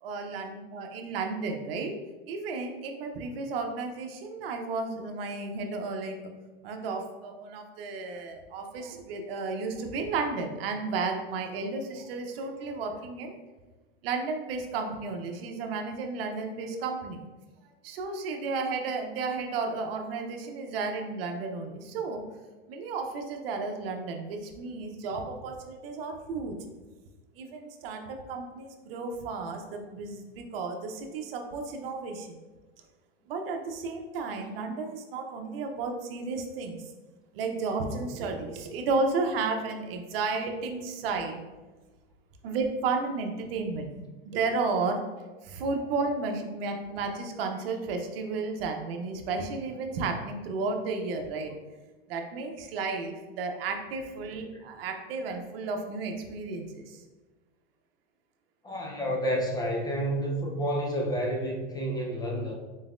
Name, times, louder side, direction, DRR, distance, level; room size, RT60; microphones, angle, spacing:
voice 1, 0.0-1.9 2.3-6.2 6.6-13.3 14.0-17.2 17.8-22.2 22.7-26.6 27.4-32.4 33.3-36.8 37.3-41.4 42.4-45.0 45.4-51.5 52.1-57.0, right 4 dB, 70° right, 4 dB, 0.8 m, -33 dB
voice 2, 58.6-62.5, equal, 15° left, -1 dB, 0.5 m, -30 dB
4.0 x 4.0 x 2.5 m, 1.2 s
supercardioid pair, 130°, 30 cm